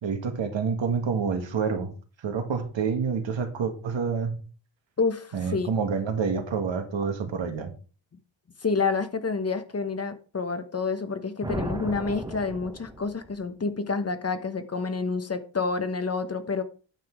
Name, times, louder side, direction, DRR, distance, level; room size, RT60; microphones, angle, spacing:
voice 1, 0.0-1.9 2.2-4.4 5.3-7.7, right 5 dB, 75° right, 1.8 m, -28 dB
voice 2, 5.0-5.7 8.6-16.6, left 4 dB, 35° left, 1.0 m, -28 dB
sound 1, 11.4-13.4, right 2 dB, 10° right, 1.0 m, -35 dB
9.3 x 5.9 x 4.7 m
wide cardioid pair, 100°, 45 cm